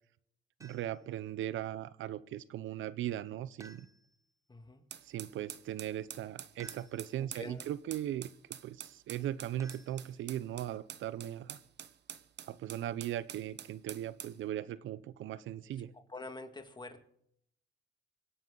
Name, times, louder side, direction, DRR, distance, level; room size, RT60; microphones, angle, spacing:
sound 1, 0.6-1.1 3.6-4.3 6.6-7.3 9.6-10.5, right 2 dB, 15° right, 1.5 m, -57 dB
voice 1, 0.6-3.9 5.0-8.3 8.6-11.6 12.5-15.9, right 12 dB, 75° right, 17 dB, 0.7 m, -38 dB
voice 2, 4.5-4.8 7.2-7.7 16.1-17.0, left 2 dB, 20° left, 6 dB, 2.2 m, -46 dB
sound 2, 4.9-14.4, right 9 dB, 60° right, 1.1 m, -47 dB
25.5 x 11.5 x 4.0 m, 0.71 s
cardioid pair, 90°, 20 cm